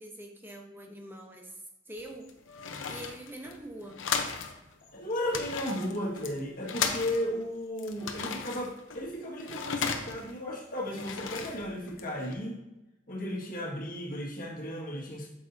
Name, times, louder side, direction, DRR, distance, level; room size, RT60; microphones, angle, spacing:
voice 1, 0.0-2.3 2.9-4.0, right 1 dB, 10° right, 2 dB, 0.9 m, -44 dB
sound 1, 2.0-4.6 4.8-4.9 5.2-7.4 7.8-10.4 10.8-12.3, left 6 dB, 75° left, 0.8 m, -35 dB
voice 2, 4.9-12.6 13.1-15.3, left 1 dB, 45° left, -2 dB, 1.8 m, -35 dB
8.4 x 6.5 x 2.7 m, 0.96 s
head